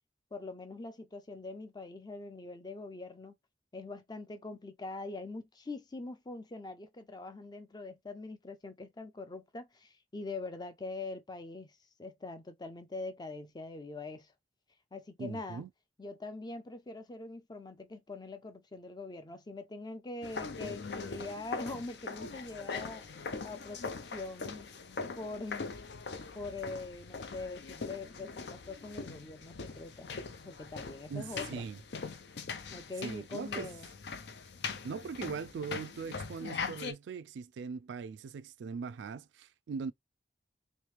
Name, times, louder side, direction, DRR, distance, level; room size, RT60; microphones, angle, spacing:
voice 1, 0.3-3.3 3.7-14.3 14.9-15.6 16.0-23.0 23.4-24.7 25.1-25.7 26.3-30.1 30.4-31.6 32.7-33.9, left 3 dB, 25° left, 0.5 m, -43 dB
voice 2, 15.2-15.7 31.1-31.8 33.0-33.7 34.8-39.9, right 5 dB, 90° right, 0.3 m, -40 dB
sound 1, 20.2-36.9, left 4 dB, 70° left, 0.6 m, -42 dB
3.2 x 3.0 x 3.2 m
head